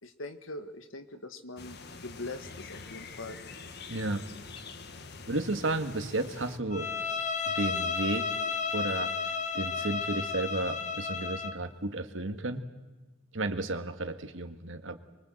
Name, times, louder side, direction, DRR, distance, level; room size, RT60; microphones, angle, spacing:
voice 1, 0.0-1.8 2.0-3.4, left 2 dB, 85° left, 9 dB, 1.8 m, -42 dB
sound 1, 1.6-6.6, left 4 dB, 55° left, 1.5 m, -46 dB
voice 2, 3.9-4.2 5.3-6.9 7.5-8.3 8.7-12.7 13.3-15.0, right 2 dB, 70° right, 8 dB, 1.8 m, -33 dB
Bowed string instrument, 6.7-11.6, left 5 dB, 40° left, 1.2 m, -32 dB
24.5 x 23.0 x 7.9 m, 1.3 s
head